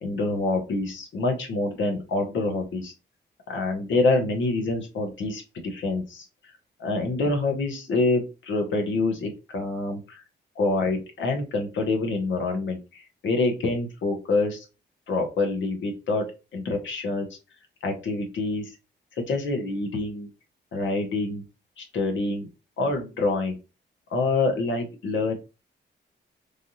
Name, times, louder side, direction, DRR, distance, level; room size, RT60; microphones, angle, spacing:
voice 1, 0.0-2.9 3.5-6.5 6.8-10.2 10.6-14.6 15.1-17.3 17.8-18.7 19.2-20.3 20.7-21.4 21.8-22.5 22.8-23.6 24.1-25.3, left 3 dB, 80° left, 3 dB, 1.1 m, -26 dB
3.3 x 2.5 x 2.7 m, 0.30 s
cardioid pair, 110°, 19 cm